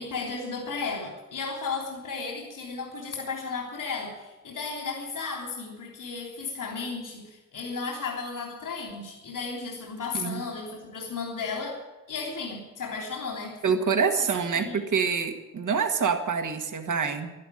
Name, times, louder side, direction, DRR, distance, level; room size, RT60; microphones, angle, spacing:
voice 1, 0.0-11.8 12.1-13.6 14.6-14.9, left 4 dB, 75° left, 0 dB, 3.5 m, -34 dB
voice 2, 13.6-17.3, right 6 dB, 70° right, 5 dB, 1.8 m, -26 dB
12.0 x 12.0 x 9.9 m, 1.1 s
cardioid pair, 55°, 32 cm